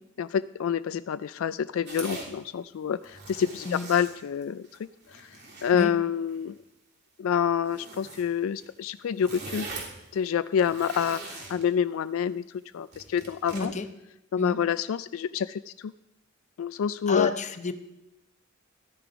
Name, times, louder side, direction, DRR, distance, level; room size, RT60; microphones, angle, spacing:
voice 1, 0.2-5.4 5.6-6.5 7.2-9.7 10.1-12.4 12.7-13.7 14.3-15.9 16.6-17.3, left 8 dB, 75° left, 14 dB, 0.3 m, -27 dB
sound 1, 1.9-2.3 2.9-4.8 5.0-5.7 6.3-6.5 7.6-8.2 8.6-8.7 8.9-9.9 10.4-11.6 12.9-13.6, right 3 dB, 55° right, 3.2 m, -41 dB
voice 2, 13.5-13.9 14.4-14.6 17.1-17.7, left 4 dB, 35° left, 9 dB, 0.8 m, -30 dB
13.5 x 9.9 x 5.1 m, 0.91 s
head